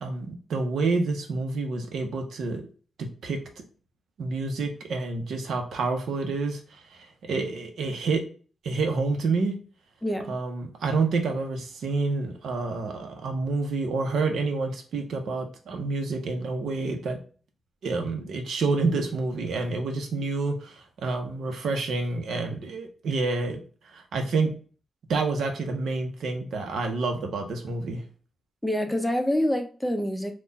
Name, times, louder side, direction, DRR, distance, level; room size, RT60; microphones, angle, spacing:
voice 1, 0.0-2.6 3.0-3.4 4.2-6.6 6.9-8.2 8.6-9.5 10.3-17.2 17.8-23.6 23.9-24.5 25.1-28.0, right 3 dB, 80° right, 0.9 m, -28 dB
voice 2, 10.0-10.3 28.6-30.3, left 1 dB, 5° left, 0.5 m, -26 dB
4.3 x 2.4 x 4.0 m
wide cardioid pair, 135°, 0 cm